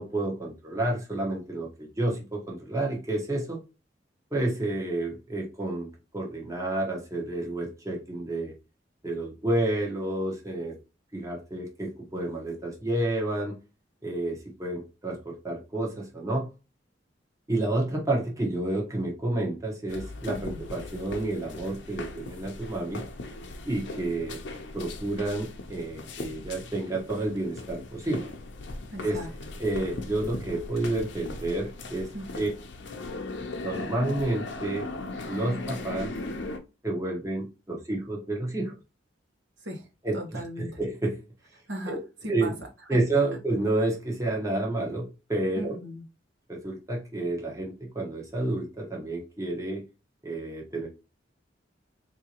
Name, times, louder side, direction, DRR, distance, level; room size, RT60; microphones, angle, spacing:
voice 1, 0.0-3.6 4.3-8.5 9.0-10.8 11.1-13.6 14.0-16.5 17.5-23.0 23.6-24.4 24.7-28.3 29.0-29.2 29.6-32.1 32.3-32.5 33.6-34.9 35.3-36.1 36.8-38.8 40.0-40.2 40.6-41.2 41.9-42.0 42.3-42.5 42.9-45.7 46.5-49.8 50.2-50.9, right 2 dB, 15° right, 1.0 m, -30 dB
sound 1, 19.9-36.6, left 2 dB, 65° left, 0.7 m, -38 dB
voice 2, 20.3-20.6 28.9-29.3 32.1-32.5 39.6-40.8 41.7-41.9 42.2-43.0 45.6-46.0, right 1 dB, 70° right, 1.1 m, -38 dB
3.6 x 2.7 x 2.9 m
head